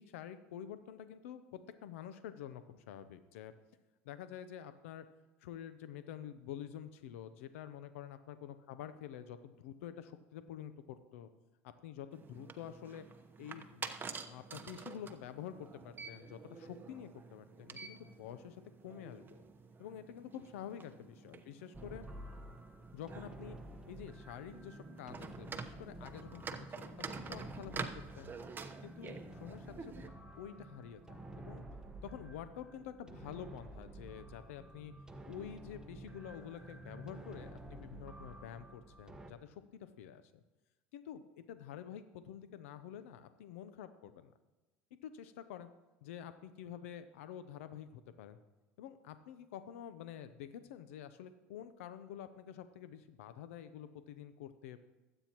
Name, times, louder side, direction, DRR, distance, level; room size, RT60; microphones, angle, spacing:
voice 1, 0.0-3.5 4.0-5.1 5.4-11.3 11.6-13.1 13.4-13.9 14.2-19.2 19.8-22.1 22.9-23.6 23.9-28.3 28.8-31.7 32.0-34.9 35.2-40.4 40.9-44.3 45.0-45.7 46.0-48.4 48.8-54.8, left 9 dB, 85° left, 11 dB, 0.6 m, -48 dB
sound 1, 12.1-30.1, right 5 dB, 30° right, 1.0 m, -48 dB
sound 2, 21.7-39.3, right 1 dB, 10° right, 1.2 m, -51 dB
22.0 x 8.9 x 3.0 m, 1.1 s
supercardioid pair, 90°, 7 cm